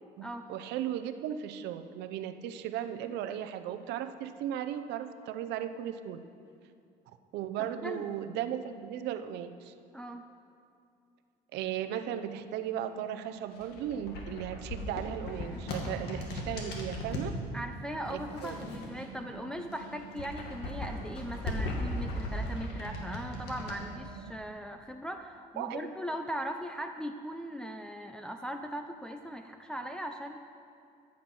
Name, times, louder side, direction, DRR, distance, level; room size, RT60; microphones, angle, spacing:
voice 1, 0.2-6.2 7.3-9.7 11.5-17.4 18.1-18.6 25.6-25.9, right 10 dB, 85° right, 9 dB, 0.7 m, -36 dB
voice 2, 7.6-8.1 9.9-10.2 17.5-30.4, equal, 5° left, 4 dB, 0.5 m, -39 dB
sound 1, 12.3-24.3, right 5 dB, 45° right, 0.7 m, -50 dB
sound 2, 13.5-17.3 18.0-19.3 19.7-23.8, left 1 dB, 80° left, 2.1 m, -37 dB
14.0 x 7.3 x 6.1 m, 2.5 s
cardioid pair, 110°, 17 cm